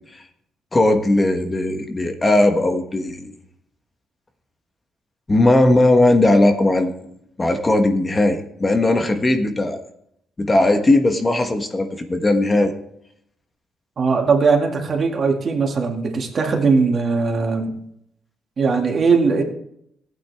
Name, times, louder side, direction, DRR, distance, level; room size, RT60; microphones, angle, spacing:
voice 1, 0.7-3.3 5.3-6.9 7.4-9.8 10.4-12.7, left 2 dB, 25° left, 6 dB, 1.3 m, -18 dB
voice 2, 14.0-17.7 18.6-19.4, right 4 dB, 45° right, 2 dB, 2.2 m, -19 dB
15.0 x 9.0 x 3.5 m, 0.73 s
cardioid pair, 90°, 0 cm